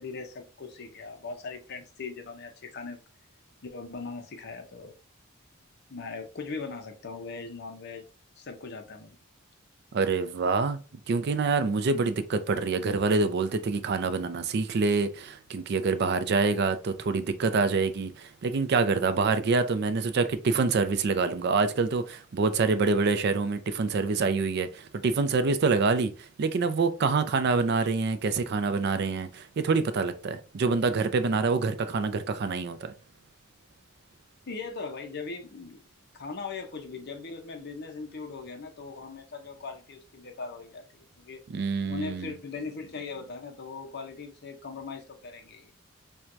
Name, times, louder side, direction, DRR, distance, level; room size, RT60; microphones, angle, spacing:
voice 1, 0.0-3.0 3.6-4.9 5.9-8.0 8.4-9.2 34.5-35.8 36.1-41.4 41.9-45.7, left 4 dB, 50° left, 0.6 m, -39 dB
voice 2, 9.9-10.8 11.1-26.1 26.4-32.9 41.5-42.3, right 4 dB, 50° right, 0.4 m, -26 dB
4.4 x 2.2 x 2.5 m
head